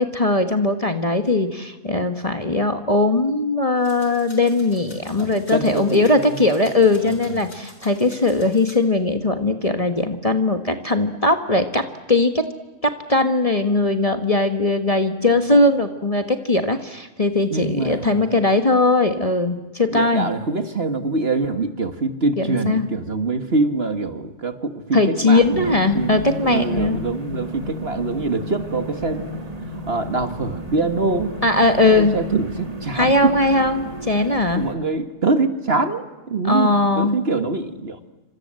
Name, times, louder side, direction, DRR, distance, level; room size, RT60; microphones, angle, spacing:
voice 1, 0.0-11.8 12.1-12.4 12.8-20.3 22.4-22.9 24.9-27.0 31.4-32.1 32.9-34.7 36.4-37.2, left 2 dB, 25° left, 6 dB, 1.4 m, -19 dB
sound 1, 3.8-8.8, left 2 dB, 80° left, 5.7 m, -47 dB
voice 2, 5.2-6.4 7.0-7.5 15.2-15.6 17.5-18.4 19.9-29.3 29.9-31.3 31.9-33.4 34.5-38.0, right 3 dB, 40° right, 8 dB, 1.7 m, -24 dB
sound 2, 25.3-34.7, equal, 25° right, 2.3 m, -32 dB
28.0 x 26.0 x 7.6 m, 1.1 s
omnidirectional pair, 1.6 m